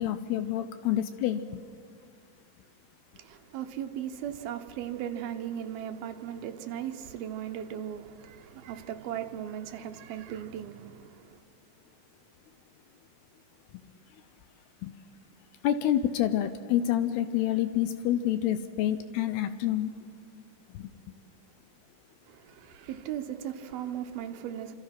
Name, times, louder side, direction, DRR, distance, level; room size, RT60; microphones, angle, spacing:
voice 1, 0.0-1.6 14.8-14.9 15.6-19.9 20.7-20.9, left 11 dB, 80° left, 2.7 m, -28 dB
voice 2, 3.2-11.4 22.2-24.7, right 10 dB, 70° right, 2.7 m, -37 dB
28.0 x 26.5 x 5.9 m
omnidirectional pair, 5.0 m